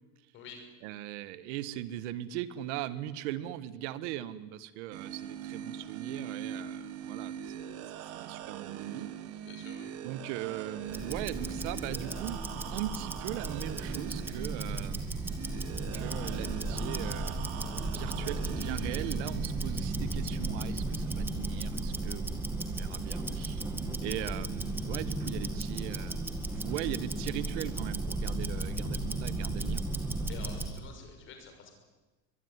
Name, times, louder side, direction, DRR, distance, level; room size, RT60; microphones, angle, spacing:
voice 1, 0.8-7.8 8.1-9.1 10.0-12.4 12.7-15.2 15.9-22.3 22.8-23.6 24.0-26.3 26.5-29.8, right 13 dB, 80° right, 14 dB, 1.6 m, -39 dB
sound 1, 4.9-23.9, right 9 dB, 45° right, 1.9 m, -42 dB
voice 2, 9.5-9.9 30.3-31.7, left 6 dB, 35° left, 5 dB, 6.1 m, -48 dB
Tick-tock, 10.9-30.8, right 2 dB, 5° right, 1.9 m, -35 dB
23.5 x 21.5 x 9.9 m, 1.2 s
cardioid pair, 175°, 34 cm